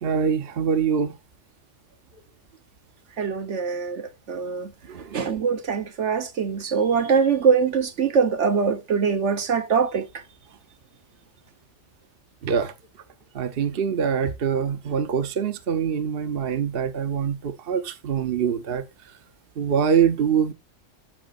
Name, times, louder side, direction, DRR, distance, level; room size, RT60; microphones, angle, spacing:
voice 1, 0.0-1.1 4.9-5.3 12.4-12.7 13.3-18.8 19.6-20.5, right 7 dB, 55° right, 1.0 m, -24 dB
voice 2, 3.2-4.7 5.1-10.1, right 6 dB, 75° right, 1.5 m, -23 dB
13.5 x 6.2 x 2.5 m
omnidirectional pair, 1.2 m